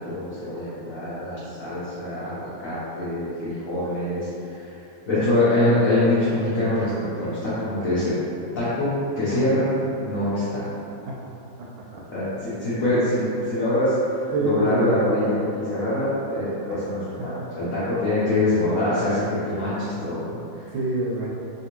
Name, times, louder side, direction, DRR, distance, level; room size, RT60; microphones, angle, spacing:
voice 1, 0.0-4.7 5.1-6.9 7.2-8.2 8.6-9.7 10.0-10.6 12.1-20.6, left 1 dB, 70° left, -12 dB, 0.8 m, -24 dB
voice 2, 11.6-12.0 12.8-13.0 14.3-15.0 16.7-16.8 17.2-17.5 20.7-21.3, right 2 dB, 80° right, -4 dB, 1.4 m, -27 dB
3.4 x 2.7 x 2.9 m, 2.8 s
omnidirectional pair, 2.2 m